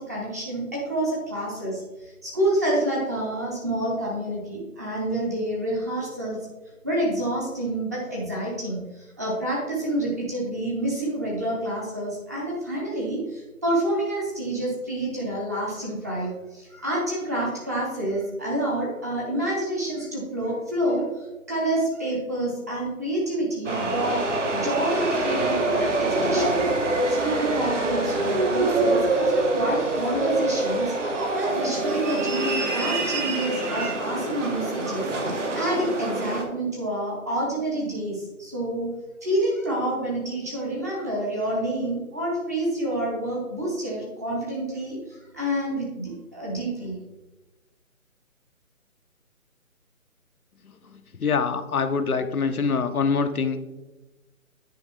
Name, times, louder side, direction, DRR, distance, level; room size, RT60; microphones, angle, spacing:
voice 1, 0.0-6.4 6.8-24.2 24.5-26.6 27.1-38.9 39.2-47.0, right 1 dB, 10° right, -4 dB, 0.7 m, -28 dB
sound 1, 23.6-36.4, right 2 dB, 55° right, 1.4 m, -25 dB
Laughter, 29.5-33.3 33.5-36.4, right 1 dB, 80° right, 2.0 m, -39 dB
voice 2, 51.2-53.7, left 5 dB, 85° left, 8 dB, 0.9 m, -24 dB
9.5 x 5.0 x 3.5 m, 1.1 s
figure-of-eight pair, 155°, 42 cm